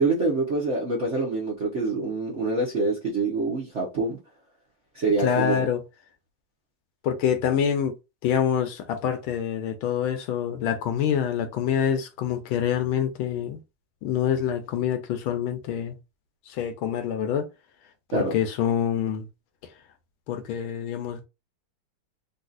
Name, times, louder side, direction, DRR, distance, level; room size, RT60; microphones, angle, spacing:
voice 1, 0.0-4.2 4.9-5.7 18.1-18.4, right 3 dB, 55° right, 0.8 m, -25 dB
voice 2, 5.2-5.8 7.0-7.9 8.2-13.6 14.0-16.0 16.5-17.4 18.1-19.3 20.3-21.3, left 9 dB, 75° left, 1.4 m, -26 dB
4.0 x 2.4 x 2.5 m
omnidirectional pair, 2.4 m